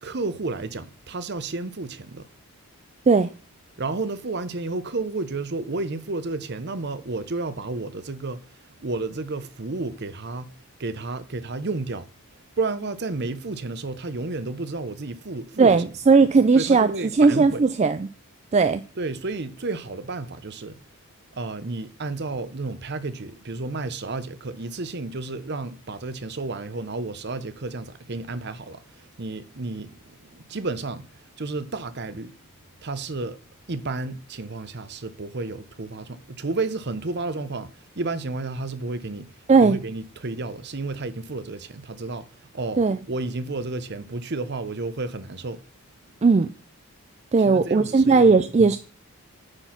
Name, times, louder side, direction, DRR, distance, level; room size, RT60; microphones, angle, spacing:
voice 1, 0.0-2.3 3.8-10.5 10.8-12.1 12.3-16.1 16.5-17.7 18.9-20.8 21.3-32.4 32.8-33.4 33.7-45.6 47.4-48.5, right 3 dB, 50° right, 0.8 m, -32 dB
voice 2, 15.6-16.9 17.2-18.1 18.5-18.8 39.5-39.8 42.8-43.0 46.2-46.5 47.3-48.8, right 4 dB, 30° right, 0.3 m, -17 dB
9.8 x 4.5 x 5.8 m
head